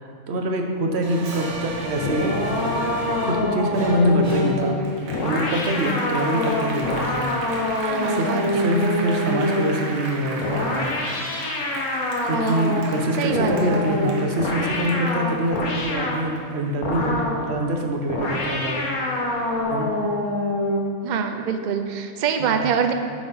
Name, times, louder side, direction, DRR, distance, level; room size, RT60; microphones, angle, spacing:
voice 1, 0.0-2.8 3.2-4.8 5.2-10.9 12.2-18.9 19.7-19.9 22.4-22.7, right 1 dB, 50° right, 3 dB, 1.0 m, -25 dB
Applause, 1.0-17.8 18.2-19.4, right 2 dB, 70° right, 1.5 m, -35 dB
sound 1, 2.0-9.8 10.4-12.9 13.3-16.3 16.8-17.5 18.1-20.9, left 2 dB, 75° left, 1.5 m, -25 dB
voice 2, 7.8-8.7 12.3-12.6 13.2-13.7 21.0-22.9, right 7 dB, 90° right, 6 dB, 0.4 m, -25 dB
8.7 x 5.1 x 5.5 m, 2.3 s
omnidirectional pair, 1.5 m